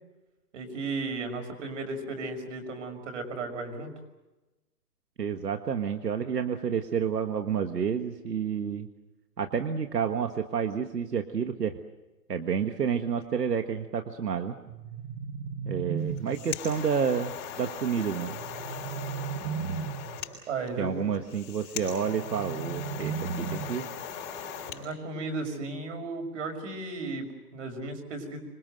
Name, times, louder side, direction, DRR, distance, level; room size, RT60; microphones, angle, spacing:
voice 1, 0.5-3.9 20.5-21.1 24.7-28.4, right 3 dB, 50° right, 6 dB, 6.2 m, -35 dB
voice 2, 5.2-8.9 9.4-11.8 12.3-14.6 15.7-18.4 20.8-23.9, right 7 dB, 90° right, 7 dB, 1.8 m, -29 dB
sound 1, 14.7-16.7 18.4-20.2 22.0-24.0, right 6 dB, 20° right, 1.0 m, -35 dB
sound 2, 16.0-24.8, left 8 dB, 25° left, 6.6 m, -40 dB
26.5 x 24.0 x 7.8 m, 1.1 s
hypercardioid pair, 155°, 47 cm